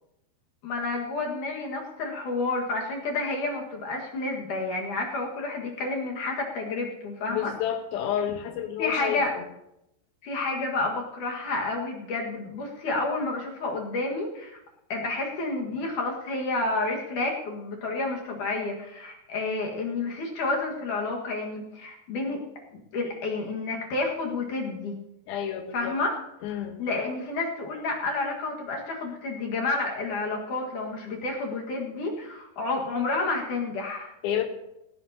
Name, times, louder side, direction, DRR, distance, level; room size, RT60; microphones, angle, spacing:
voice 1, 0.6-7.5 8.8-9.3 10.2-14.6 14.9-22.4 22.9-25.0 25.7-26.1 26.5-34.1, left 3 dB, 60° left, 0 dB, 2.9 m, -30 dB
voice 2, 7.3-9.4 25.3-26.0 26.4-26.8 34.2-34.4, left 10 dB, 75° left, 6 dB, 2.9 m, -30 dB
18.0 x 15.5 x 2.8 m, 0.85 s
omnidirectional pair, 4.5 m